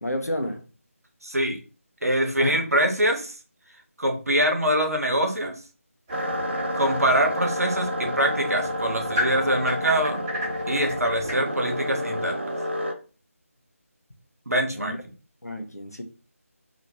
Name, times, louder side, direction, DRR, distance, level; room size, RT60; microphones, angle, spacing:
voice 1, 0.0-0.7 2.4-2.6 14.7-15.0 15.4-16.0, left 1 dB, 85° left, 0.7 m, -30 dB
voice 2, 1.2-1.6 2.0-3.3 4.0-5.5 6.7-10.2 10.7-12.4 14.5-14.9, right 1 dB, 75° right, 0.8 m, -24 dB
sound 1, 6.1-11.3, left 1 dB, 15° right, 1.0 m, -35 dB
sound 2, 6.1-12.9, equal, 50° right, 0.5 m, -29 dB
2.9 x 2.1 x 2.9 m
figure-of-eight pair, 160°, 8 cm